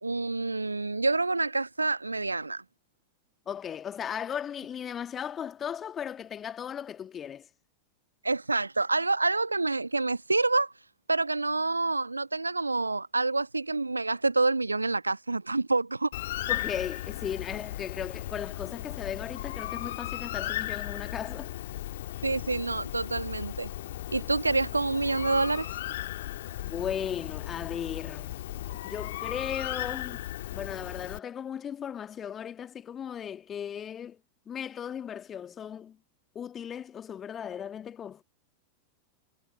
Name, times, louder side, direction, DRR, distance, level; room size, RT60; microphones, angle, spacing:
voice 1, 0.0-2.6 8.2-10.7 11.1-16.1 22.2-23.7 24.1-25.7, right 3 dB, 80° right, 1.1 m, -27 dB
voice 2, 3.5-7.5 16.5-21.5 26.6-28.3 28.8-30.2 30.5-34.2 34.5-36.0 36.4-38.2, left 8 dB, 25° left, 1.9 m, -36 dB
Bird, 16.1-31.2, left 14 dB, 55° left, 1.7 m, -36 dB
figure-of-eight pair, 90°, 0 cm